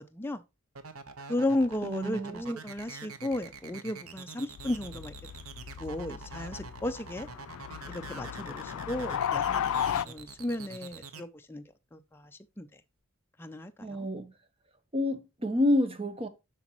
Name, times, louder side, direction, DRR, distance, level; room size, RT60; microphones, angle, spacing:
sound 1, 0.8-11.2, right 5 dB, 90° right, 1.0 m, -45 dB
voice 1, 1.3-5.1 5.8-7.3 7.9-11.6 11.9-12.7 13.4-14.1, left 1 dB, 10° left, 0.4 m, -34 dB
voice 2, 1.8-2.6 13.8-14.3 14.9-16.3, left 1 dB, 25° right, 1.0 m, -29 dB
sound 2, 4.6-10.1, left 9 dB, 80° left, 0.3 m, -34 dB
7.8 x 6.1 x 3.0 m
head